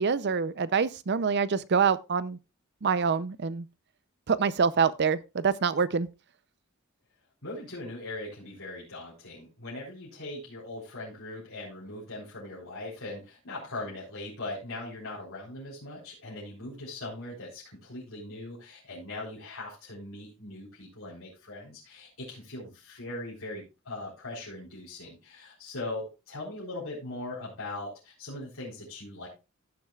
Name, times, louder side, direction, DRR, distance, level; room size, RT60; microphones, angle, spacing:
voice 1, 0.0-2.4 2.8-3.7 4.3-6.1, right 5 dB, 50° right, 0.6 m, -26 dB
voice 2, 7.4-29.3, left 2 dB, 65° left, 4.3 m, -40 dB
15.5 x 7.6 x 2.4 m
head